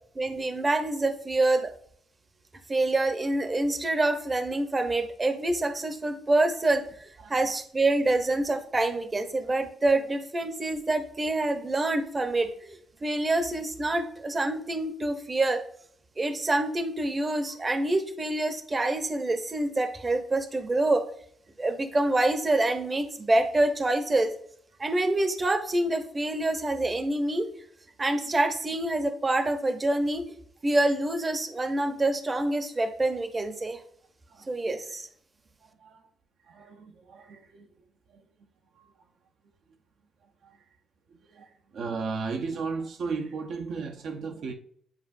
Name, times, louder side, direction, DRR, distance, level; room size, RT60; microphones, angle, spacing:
voice 1, 0.1-1.7 2.7-6.9 7.3-15.6 16.2-21.1 21.6-24.3 24.8-27.5 28.0-30.2 30.6-33.8 34.5-35.1, right 2 dB, 25° right, 0.8 m, -26 dB
voice 2, 35.6-36.1 36.5-37.7 38.1-38.2 38.8-38.9 40.4-40.6 41.1-44.5, right 4 dB, 70° right, 0.8 m, -35 dB
9.6 x 4.4 x 2.6 m
cardioid pair, 90°, 0 cm